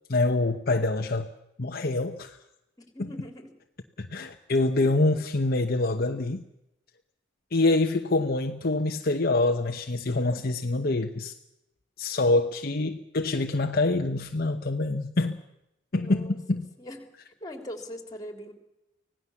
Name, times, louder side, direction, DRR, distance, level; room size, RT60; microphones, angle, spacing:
voice 1, 0.1-1.3 1.6-2.4 3.0-3.1 4.0-6.4 7.5-11.3 12.0-15.4 15.9-16.7, left 2 dB, 50° left, 4 dB, 1.0 m, -25 dB
voice 2, 2.8-3.5 4.8-4.9 15.9-16.4 16.8-17.1 17.4-18.5, equal, 20° left, 6 dB, 3.5 m, -41 dB
25.0 x 18.0 x 7.2 m, 0.87 s
head